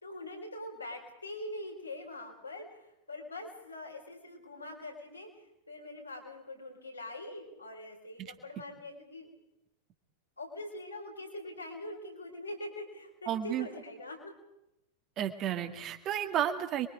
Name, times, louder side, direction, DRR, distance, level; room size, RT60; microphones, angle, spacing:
voice 1, 0.0-9.3 10.4-14.3, left 1 dB, 80° left, 0 dB, 5.1 m, -43 dB
voice 2, 13.3-13.7 15.2-16.9, right 10 dB, 35° right, 6 dB, 2.1 m, -32 dB
28.0 x 23.0 x 5.1 m, 0.84 s
figure-of-eight pair, 90°, 0 cm